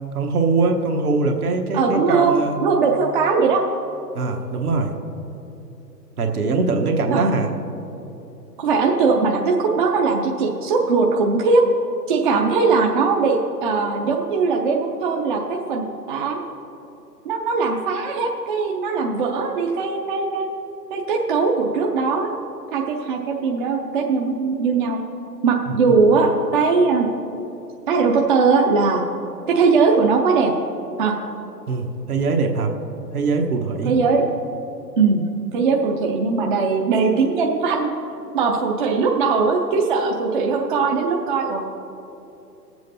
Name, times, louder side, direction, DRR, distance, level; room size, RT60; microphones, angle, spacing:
voice 1, 0.1-2.6 4.1-4.9 6.2-7.5 25.8-25.9 31.7-32.7 33.1-34.0, right 3 dB, 65° right, 3 dB, 1.3 m, -22 dB
voice 2, 1.7-2.3 2.6-3.6 7.1-7.3 8.6-11.6 12.1-16.5 17.2-20.5 20.9-22.3 22.7-25.0 25.4-27.1 27.9-29.0 29.5-30.5 31.0-31.1 33.8-34.2 35.0-37.9 38.3-41.6, right 4 dB, 30° right, 1 dB, 0.6 m, -20 dB
20.5 x 7.7 x 2.8 m, 2.9 s
figure-of-eight pair, 120°, 49 cm